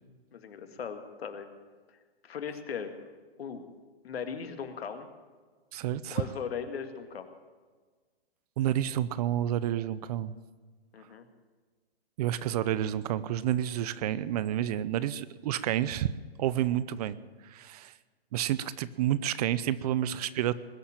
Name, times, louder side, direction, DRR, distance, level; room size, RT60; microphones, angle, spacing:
voice 1, 0.3-1.5 2.2-2.9 3.4-3.6 4.0-5.1 6.1-7.3 10.9-11.3, left 6 dB, 75° left, 8 dB, 2.1 m, -38 dB
voice 2, 5.7-6.2 8.6-10.3 12.2-16.1 16.4-17.2 17.4-17.9 18.3-20.5, right 12 dB, 40° right, 17 dB, 0.6 m, -29 dB
20.5 x 7.2 x 8.9 m, 1.4 s
hypercardioid pair, 140°, 31 cm